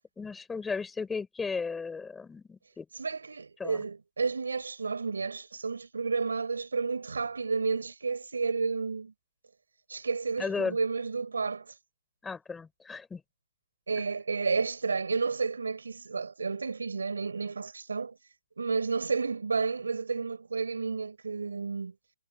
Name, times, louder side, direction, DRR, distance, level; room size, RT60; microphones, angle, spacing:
voice 1, 0.2-2.9 3.6-3.8 10.4-10.8 12.2-13.2, left 5 dB, 5° left, 4.0 m, -35 dB
voice 2, 2.9-9.1 9.9-11.7 13.9-18.2 18.6-21.9, right 4 dB, 85° right, 4.3 m, -31 dB
hypercardioid pair, 165°, 0 cm